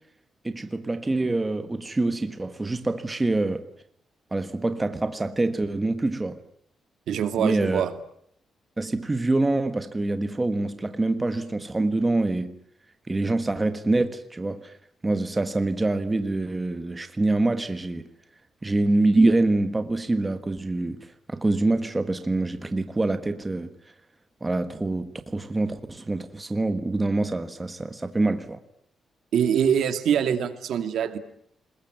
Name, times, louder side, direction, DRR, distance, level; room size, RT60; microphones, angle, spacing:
voice 1, 0.4-3.7 4.3-6.4 7.4-7.8 8.8-12.5 13.1-14.7 15.0-18.1 18.6-23.7 24.4-28.6, right 2 dB, 15° right, 1.4 m, -25 dB
voice 2, 7.1-7.9 29.3-31.2, right 8 dB, 75° right, 2.4 m, -24 dB
29.0 x 21.0 x 9.3 m
wide cardioid pair, 165°, 0 cm